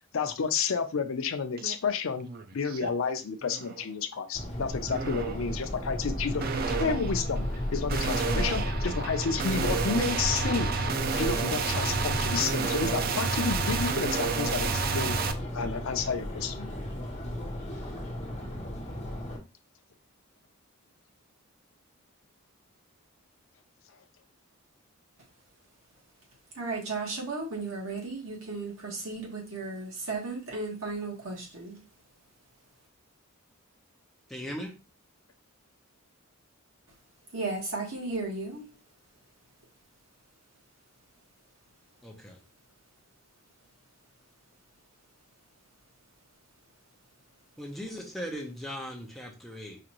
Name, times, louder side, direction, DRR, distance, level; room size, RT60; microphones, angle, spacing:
voice 1, 0.1-2.3 2.5-7.4 7.7-10.7 11.1-15.2 15.5-16.7, left 5 dB, 65° left, 9 dB, 0.5 m, -31 dB
sound 1, 1.6-1.8 2.2-2.9 3.4-3.8 4.9-5.5 6.4-15.3, right 5 dB, 45° right, 0.4 m, -30 dB
Subway metro underground, 4.3-19.4, equal, 30° left, 1.3 m, -34 dB
voice 2, 26.5-31.8 37.3-38.6, right 3 dB, 70° right, -1 dB, 1.4 m, -35 dB
voice 3, 34.3-34.7 42.0-42.4 47.6-49.8, equal, ahead, -1 dB, 0.7 m, -38 dB
5.0 x 2.5 x 2.9 m, 0.30 s
head